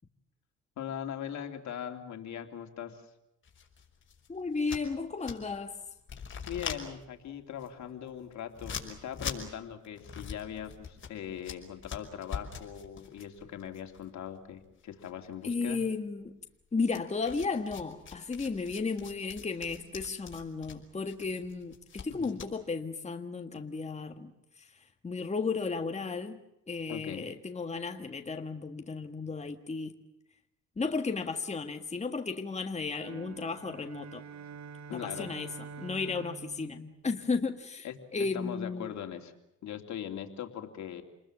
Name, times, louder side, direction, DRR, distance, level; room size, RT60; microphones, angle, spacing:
voice 1, 0.8-3.0 6.5-15.8 22.1-22.4 26.9-27.3 34.9-35.3 37.8-39.3 39.6-41.0, left 9 dB, 70° left, 3.0 m, -40 dB
sound 1, 3.4-5.7 6.0-14.8 15.0-15.8 16.9-22.5, left 6 dB, 40° left, 5.5 m, -43 dB
voice 2, 4.3-5.8 15.4-16.4 16.7-24.3 24.6-24.7 25.0-26.4 26.7-29.9 30.8-34.2 34.9-35.5 35.8-37.9 38.1-38.9, left 4 dB, 20° left, 1.7 m, -34 dB
sound 2, 32.9-37.6, right 5 dB, 65° right, 2.1 m, -47 dB
28.0 x 20.5 x 7.5 m
cardioid pair, 90°, 30 cm